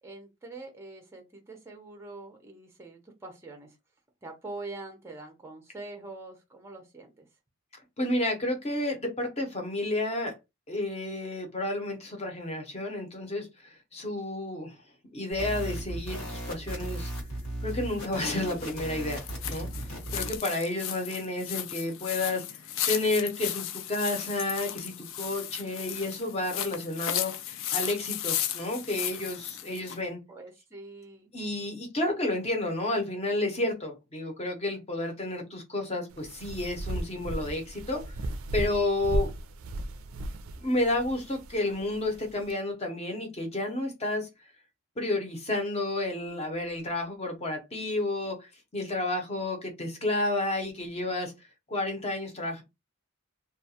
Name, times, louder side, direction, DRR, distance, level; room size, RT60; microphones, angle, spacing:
voice 1, 0.0-3.8 4.2-7.3 30.3-31.3, right 2 dB, 10° right, 0.4 m, -44 dB
voice 2, 8.0-10.3 10.7-14.7 15.1-17.1 17.6-22.4 22.9-30.2 31.3-38.2 38.5-39.3 40.6-44.3 45.0-51.3 51.7-52.6, left 2 dB, 30° left, 0.7 m, -31 dB
sound 1, 15.3-20.4, right 1 dB, 85° left, 1.4 m, -36 dB
sound 2, 17.7-30.0, left 11 dB, 65° left, 0.3 m, -35 dB
sound 3, 36.1-42.5, right 1 dB, 70° right, 0.3 m, -36 dB
2.3 x 2.2 x 2.7 m
head